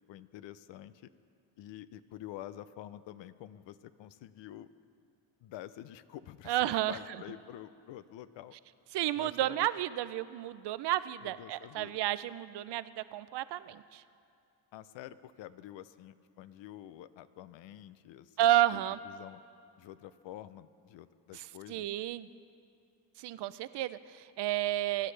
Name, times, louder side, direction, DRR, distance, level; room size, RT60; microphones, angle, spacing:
voice 1, 0.1-1.1 1.6-4.7 5.4-8.5 9.2-9.7 11.2-12.0 14.7-18.4 18.7-19.4 19.8-21.9, left 12 dB, 85° left, 14 dB, 0.6 m, -48 dB
voice 2, 6.5-7.0 8.9-14.0 18.4-19.0 21.3-22.3 23.2-25.1, right 13 dB, 70° right, 15 dB, 0.5 m, -31 dB
23.5 x 10.0 x 3.3 m, 2.4 s
cardioid pair, 95°, 43 cm